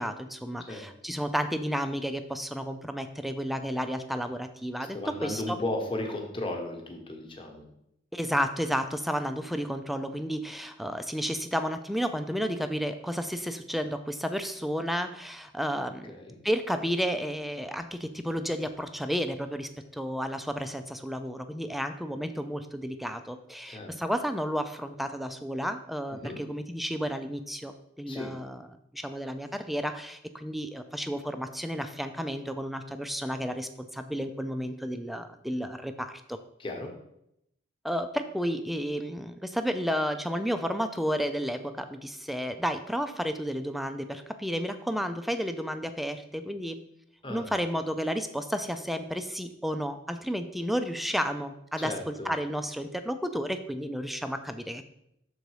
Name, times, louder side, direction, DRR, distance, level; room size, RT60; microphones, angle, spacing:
voice 1, 0.0-5.6 8.1-16.1 16.4-28.7 28.9-36.4 37.8-46.8 47.3-54.8, equal, ahead, 8 dB, 0.3 m, -32 dB
voice 2, 4.9-7.7 16.1-16.4 23.6-23.9 26.2-26.4 28.1-28.3 36.6-36.9 47.2-47.5 51.8-52.3, left 1 dB, 25° left, 1 dB, 1.0 m, -35 dB
6.7 x 3.8 x 4.7 m, 0.79 s
head